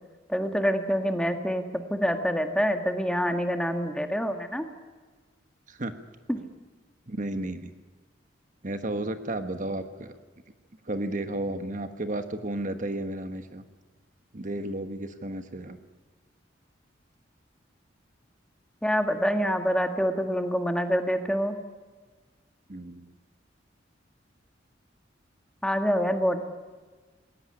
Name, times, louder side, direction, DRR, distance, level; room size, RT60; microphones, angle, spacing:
voice 1, 0.3-4.7 6.3-6.4 18.8-21.6 25.6-26.4, equal, 5° left, 6 dB, 1.7 m, -26 dB
voice 2, 7.1-7.7 8.6-10.1 10.8-13.6 14.3-15.8 22.7-23.1, right 1 dB, 45° right, 9 dB, 1.3 m, -33 dB
20.5 x 18.5 x 9.9 m, 1.4 s
head